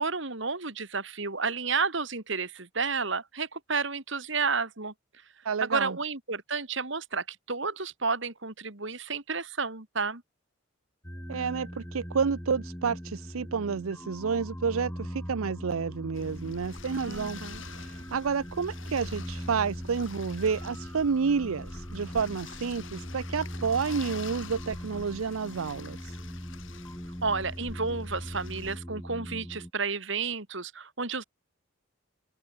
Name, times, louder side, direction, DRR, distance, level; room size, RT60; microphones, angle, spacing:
voice 1, 0.0-4.9 5.6-10.2 17.0-17.6 27.2-31.2, right 4 dB, 60° right, 2.5 m, -31 dB
voice 2, 5.4-6.0 11.3-17.4 17.7-26.2, right 5 dB, 85° right, 0.6 m, -30 dB
sound 1, 11.0-29.7, equal, 10° left, 4.8 m, -40 dB
sound 2, 16.1-28.8, left 4 dB, 70° left, 4.5 m, -46 dB
open air
head